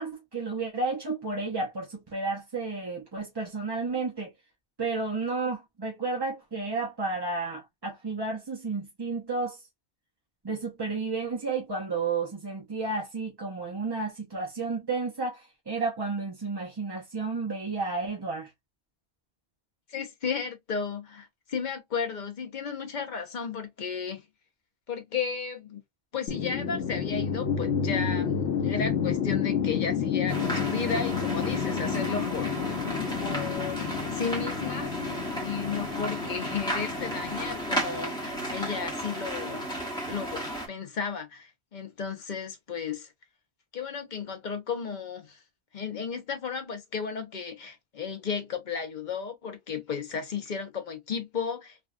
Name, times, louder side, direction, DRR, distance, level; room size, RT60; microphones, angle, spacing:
voice 1, 0.0-4.3 4.8-9.6 10.4-18.5, right 3 dB, 25° right, 0.6 m, -32 dB
voice 2, 19.9-24.2 24.9-25.8 26.1-28.4 28.6-32.6 33.2-35.2 35.4-39.7 40.0-43.1 43.7-45.4 45.7-51.9, left 6 dB, 45° left, 0.8 m, -34 dB
sound 1, 26.3-38.4, left 7 dB, 80° left, 0.9 m, -30 dB
sound 2, 30.3-40.7, right 1 dB, 5° left, 1.1 m, -34 dB
3.3 x 2.3 x 2.4 m
omnidirectional pair, 1.1 m